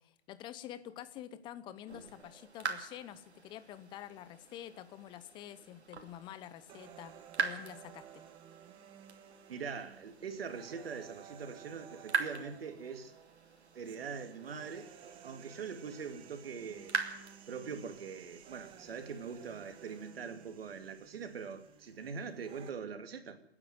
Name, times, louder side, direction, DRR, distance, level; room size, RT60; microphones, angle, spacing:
voice 1, 0.0-7.1 7.4-8.2, left 11 dB, 15° left, 0.8 m, -48 dB
sound 1, 1.9-20.1, right 5 dB, 90° right, 2.8 m, -43 dB
sound 2, 6.7-22.7, right 9 dB, 15° right, 1.1 m, -56 dB
voice 2, 9.5-13.1 13.7-14.9 15.2-17.0 17.5-23.4, right 6 dB, 65° right, 2.7 m, -43 dB
28.0 x 10.0 x 9.4 m
hypercardioid pair, 145°, 32 cm